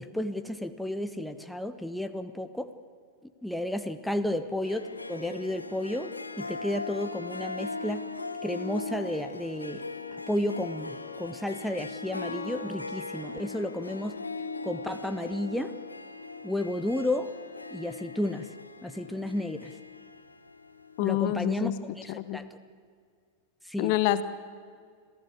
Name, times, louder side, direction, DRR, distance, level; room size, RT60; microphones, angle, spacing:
voice 1, 0.0-2.7 3.2-8.0 8.4-9.8 10.1-14.2 14.6-15.7 16.4-17.3 17.7-18.5 18.8-19.8 21.0-22.5 23.6-23.9, left 1 dB, ahead, 9 dB, 1.1 m, -32 dB
Harp, 4.6-21.4, left 3 dB, 80° left, 1.4 m, -39 dB
voice 2, 21.0-21.8 22.1-22.4 23.8-24.2, left 14 dB, 45° left, 13 dB, 1.2 m, -27 dB
27.0 x 16.0 x 8.6 m, 2.1 s
figure-of-eight pair, 90°, 0 cm